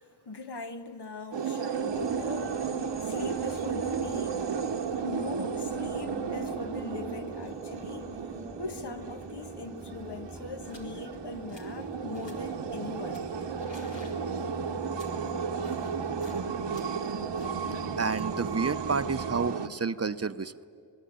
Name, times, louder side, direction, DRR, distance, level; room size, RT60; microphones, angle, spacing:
voice 1, 0.2-4.5 5.0-8.1 8.6-13.3, left 3 dB, 65° left, 1.4 m, -41 dB
sound 1, 1.3-19.7, right 6 dB, 80° right, 1.1 m, -34 dB
sound 2, 1.8-19.5, equal, 5° right, 0.8 m, -45 dB
sound 3, 9.9-10.1 10.6-10.9 11.3-11.8 12.1-12.6 13.1-16.4 16.7-19.8, left 2 dB, 85° left, 3.5 m, -54 dB
voice 2, 17.7-20.6, right 5 dB, 35° right, 0.7 m, -30 dB
24.5 x 20.5 x 8.7 m
cardioid pair, 45°, 42 cm